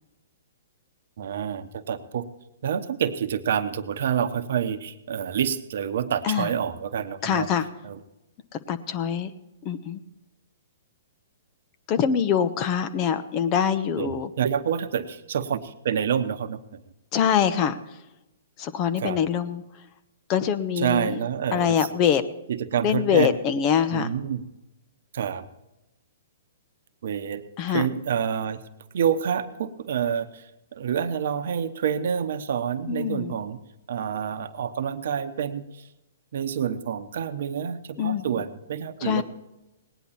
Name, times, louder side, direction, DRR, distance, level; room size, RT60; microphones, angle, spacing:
voice 1, 1.2-2.3 2.6-7.5 7.8-8.0 14.0-16.8 19.0-19.2 20.8-21.8 22.5-23.3 23.9-24.4 25.1-25.5 27.0-27.4 27.7-28.6 28.9-30.4 30.7-33.6 33.9-35.6 36.3-39.2, right 8 dB, 65° right, 10 dB, 1.0 m, -27 dB
voice 2, 7.2-7.7 8.7-9.3 9.6-10.0 11.9-14.3 17.1-17.8 18.6-19.6 20.3-21.1 21.5-22.2 22.8-24.1 27.6-27.9 32.9-33.3 38.0-38.2 39.0-39.2, left 8 dB, 35° left, 11 dB, 0.9 m, -24 dB
18.0 x 10.0 x 4.3 m, 0.96 s
hypercardioid pair, 130°, 0 cm